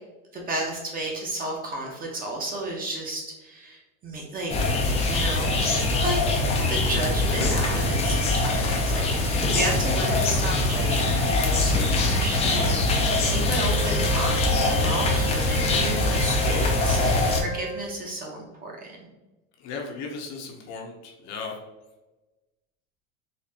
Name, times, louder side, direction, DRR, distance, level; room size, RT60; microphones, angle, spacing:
voice 1, 0.3-4.5 5.1-6.2 6.7-19.1, right 1 dB, 20° right, -1 dB, 0.7 m, -33 dB
sound 1, 4.5-17.4, left 2 dB, 15° left, 0.3 m, -23 dB
voice 2, 9.2-9.6 13.3-13.6 19.6-21.6, left 4 dB, 45° left, 2 dB, 0.7 m, -37 dB
Wind instrument woodwind instrument, 13.6-18.0, right 1 dB, 90° right, 1.3 m, -34 dB
4.2 x 2.6 x 2.7 m, 1.1 s
supercardioid pair, 135°, 39 cm